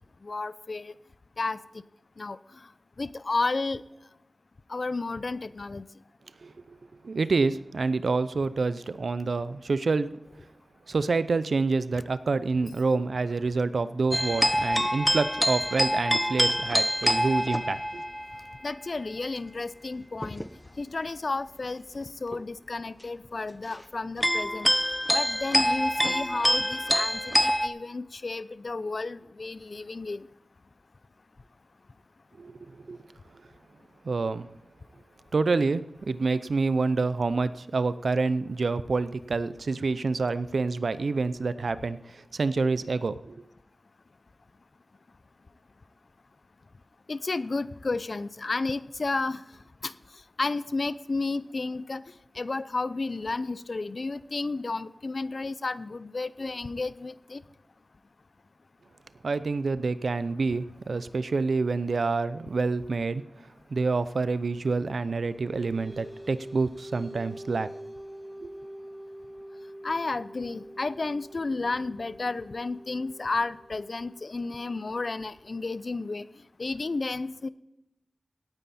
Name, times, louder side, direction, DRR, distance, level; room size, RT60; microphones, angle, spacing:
voice 1, 0.2-0.9 1.4-1.6 2.2-2.4 3.0-3.8 4.7-5.9 18.6-20.4 20.8-24.7 25.1-30.3 47.1-49.4 49.8-49.9 50.4-52.0 52.3-57.4 69.8-76.3 76.6-77.5, left 3 dB, 65° left, 16 dB, 0.6 m, -32 dB
voice 2, 7.0-10.2 10.9-18.0 32.4-32.6 32.9-33.0 34.0-34.5 35.3-43.4 59.2-63.2 63.7-67.7 68.4-68.5, right 4 dB, 85° right, 15 dB, 0.6 m, -27 dB
sound 1, 14.1-18.5 20.2-20.5 22.3-22.4 24.2-27.7, equal, 5° left, 0.8 m, -26 dB
sound 2, 65.1-76.0, right 1 dB, 15° right, 1.8 m, -45 dB
17.0 x 9.2 x 4.3 m, 0.92 s
wide cardioid pair, 50°, 0 cm